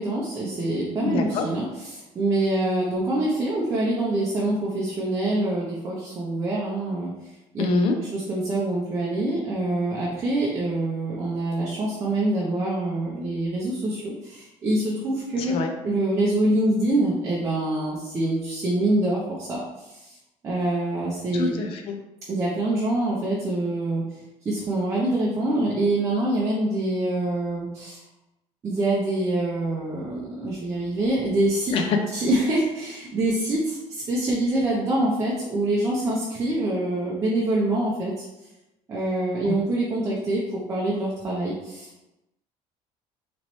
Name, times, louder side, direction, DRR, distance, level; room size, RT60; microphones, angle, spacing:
voice 1, 0.0-7.1 7.5-7.6 8.0-15.6 15.8-20.2 20.4-21.5 22.3-24.0 24.4-28.0 28.6-31.8 32.1-38.3 38.9-42.0, right 1 dB, 25° right, -5 dB, 0.6 m, -25 dB
voice 2, 1.0-1.5 7.6-7.9 15.4-15.7 21.3-22.0 31.7-32.0 39.5-39.6, left 4 dB, 50° left, 5 dB, 0.5 m, -25 dB
4.0 x 3.0 x 3.0 m, 0.95 s
cardioid pair, 170°, 12 cm